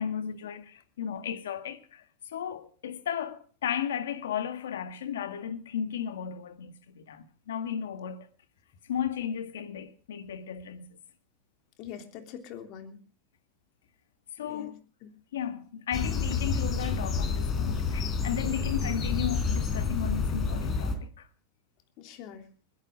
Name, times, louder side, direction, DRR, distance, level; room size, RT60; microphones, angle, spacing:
voice 1, 0.0-8.3 8.8-11.0 14.3-14.7 15.3-21.3, left 8 dB, 90° left, 1.6 m, -35 dB
voice 2, 11.8-13.0 14.4-14.7 15.0-15.1 18.4-18.6 22.0-22.4, left 9 dB, 55° left, 3.1 m, -43 dB
sound 1, 15.9-20.9, left 5 dB, 35° left, 4.1 m, -29 dB
21.0 x 11.5 x 5.1 m
supercardioid pair, 115°, 0 cm